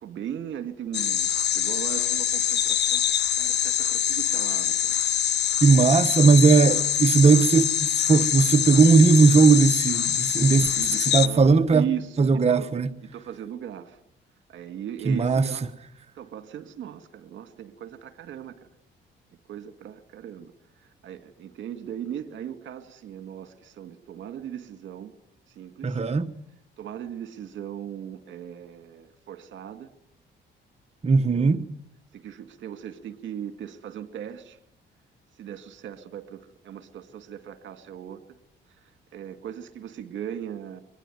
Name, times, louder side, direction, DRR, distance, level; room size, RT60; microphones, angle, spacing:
voice 1, 0.0-4.9 10.7-12.7 13.0-14.0 14.5-18.6 19.5-25.1 25.5-26.0 26.8-29.9 31.2-31.5 32.1-34.6 35.4-38.4 38.8-40.8, right 10 dB, 70° right, 2.3 m, -38 dB
sound 1, 0.9-11.3, left 10 dB, 60° left, 1.0 m, -24 dB
voice 2, 5.6-10.7 11.0-11.9 12.2-12.9 15.0-15.5 25.8-26.3 31.0-31.6, right 4 dB, 30° right, 1.2 m, -18 dB
24.5 x 20.5 x 9.4 m
cardioid pair, 90°, 20 cm